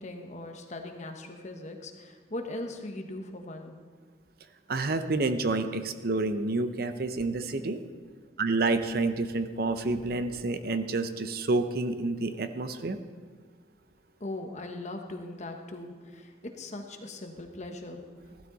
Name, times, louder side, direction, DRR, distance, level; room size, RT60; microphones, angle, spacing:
voice 1, 0.0-3.7 14.2-18.0, left 2 dB, 40° left, 4 dB, 1.2 m, -39 dB
voice 2, 4.7-7.8 8.4-13.0, right 3 dB, 60° right, 9 dB, 0.7 m, -29 dB
15.5 x 12.5 x 4.0 m, 1.6 s
head